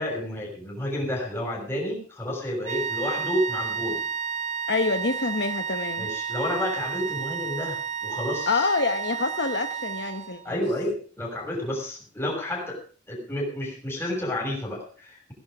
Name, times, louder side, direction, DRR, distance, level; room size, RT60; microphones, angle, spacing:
voice 1, 0.0-4.1 6.0-8.7 10.4-12.8 13.1-15.3, left 1 dB, 15° left, -1 dB, 6.3 m, -30 dB
sound 1, 2.6-10.5, right 6 dB, 40° right, 0.6 m, -31 dB
voice 2, 4.7-6.1 8.5-10.6, left 3 dB, 60° left, 8 dB, 1.0 m, -26 dB
18.0 x 11.0 x 5.1 m, 0.39 s
head